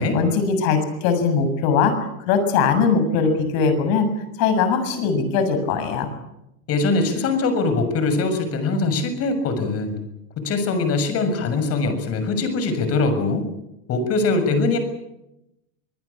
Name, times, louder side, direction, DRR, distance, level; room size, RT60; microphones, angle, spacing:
voice 1, 0.0-2.0 2.3-4.1 4.4-6.1, left 5 dB, 55° left, 9 dB, 7.3 m, -20 dB
voice 2, 6.7-10.0 10.4-13.5 13.9-14.8, left 3 dB, 35° left, 9 dB, 6.8 m, -22 dB
25.5 x 20.5 x 8.6 m, 0.88 s
supercardioid pair, 145°, 42 cm